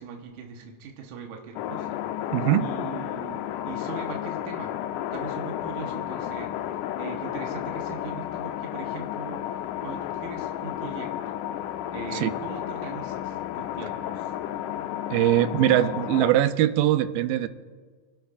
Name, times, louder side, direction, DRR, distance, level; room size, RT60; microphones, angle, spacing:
voice 1, 0.0-2.3 2.6-4.7 5.1-6.6 7.0-11.4 11.9-14.3, right 5 dB, 70° right, 1 dB, 2.4 m, -40 dB
sound 1, 1.6-16.3, left 11 dB, 80° left, 1.8 m, -32 dB
voice 2, 2.3-2.7 12.1-12.3 15.1-17.5, right 13 dB, 85° right, 11 dB, 2.3 m, -22 dB
28.5 x 11.5 x 2.5 m, 1.5 s
omnidirectional pair, 4.0 m